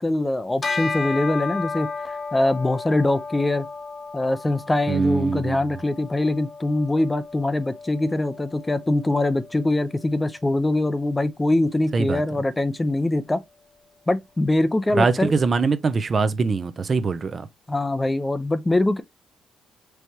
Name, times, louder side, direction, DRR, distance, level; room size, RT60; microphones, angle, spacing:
voice 1, 0.0-3.7 4.1-13.4 14.1-15.3 17.7-19.0, left 2 dB, 15° left, 0.6 m, -23 dB
Bell, 0.6-10.3, left 4 dB, 35° left, 0.9 m, -34 dB
voice 2, 4.9-5.6 11.9-12.2 14.9-17.5, right 4 dB, 40° right, 0.6 m, -22 dB
4.6 x 3.3 x 2.8 m
cardioid pair, 90°, 0 cm